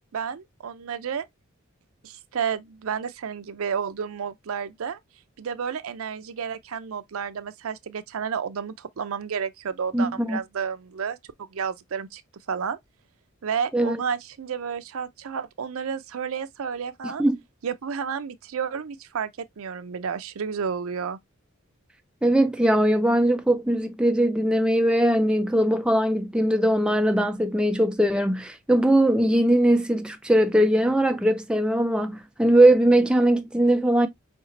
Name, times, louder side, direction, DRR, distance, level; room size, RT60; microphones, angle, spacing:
voice 1, 0.1-1.3 2.0-5.0 5.4-12.2 12.5-12.8 13.4-17.2 17.6-21.2, right 6 dB, 70° right, 0.5 m, -31 dB
voice 2, 9.9-10.4 13.7-14.0 17.2-17.4 22.2-34.1, right 1 dB, 5° right, 0.4 m, -20 dB
5.3 x 2.9 x 2.6 m
head